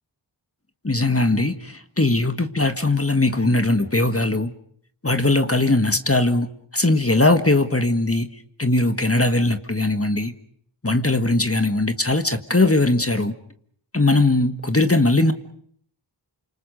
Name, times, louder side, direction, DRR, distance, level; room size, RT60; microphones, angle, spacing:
voice 1, 0.8-4.5 5.0-6.5 6.7-8.3 8.6-10.3 10.8-13.3 13.9-15.3, left 2 dB, 30° left, 1.6 m, -20 dB
29.5 x 26.5 x 5.2 m
wide cardioid pair, 40°, 45 cm